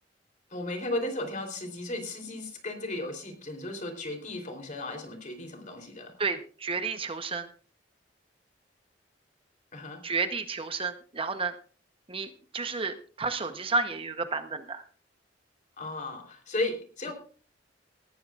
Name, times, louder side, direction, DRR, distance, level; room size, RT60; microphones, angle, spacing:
voice 1, 0.5-6.1 9.7-10.0 15.8-17.1, left 2 dB, 45° left, 5 dB, 3.5 m, -35 dB
voice 2, 6.2-7.5 10.0-11.5 12.1-14.8, right 4 dB, 30° right, 8 dB, 0.9 m, -31 dB
19.5 x 14.0 x 2.4 m, 0.40 s
head